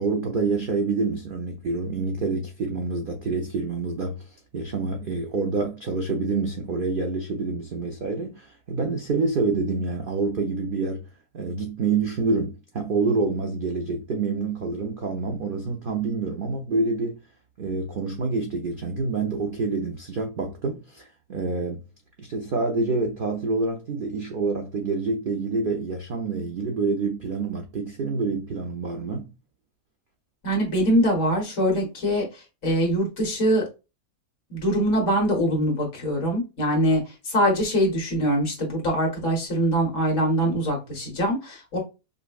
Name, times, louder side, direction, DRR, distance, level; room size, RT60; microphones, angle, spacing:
voice 1, 0.0-11.0 11.3-17.2 17.6-21.8 22.2-29.3, right 3 dB, 60° right, 0.5 m, -27 dB
voice 2, 30.4-32.2 32.6-33.6 34.5-41.8, equal, 55° left, 1.7 m, -23 dB
5.1 x 2.2 x 2.3 m
omnidirectional pair, 1.6 m